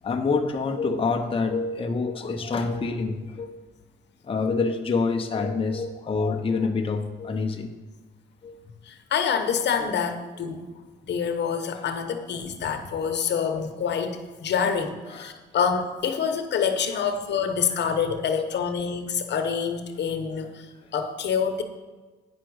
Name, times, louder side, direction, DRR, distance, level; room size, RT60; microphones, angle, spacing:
voice 1, 0.0-3.6 4.2-7.7 8.4-8.6 13.4-13.5 13.9-14.0 14.6-14.7 15.1-15.4 16.9-17.1, left 4 dB, 25° left, 2 dB, 0.8 m, -27 dB
voice 2, 8.8-10.7 11.0-20.7 20.9-21.6, left 7 dB, 60° left, 7 dB, 1.0 m, -27 dB
9.1 x 5.9 x 6.3 m, 1.3 s
cardioid pair, 90°, 20 cm